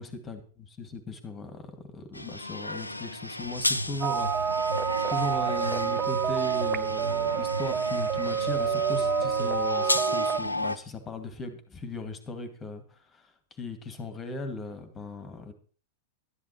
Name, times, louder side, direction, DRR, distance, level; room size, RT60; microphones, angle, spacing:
voice 1, 0.0-4.8 5.1-13.3 13.6-15.5, left 3 dB, 20° left, 9 dB, 2.2 m, -38 dB
sound 1, 2.1-10.8, left 1 dB, 85° left, 0.7 m, -33 dB
sound 2, 4.0-10.4, right 8 dB, 30° right, 0.8 m, -28 dB
12.5 x 11.0 x 4.4 m, 0.40 s
figure-of-eight pair, 95°, 0 cm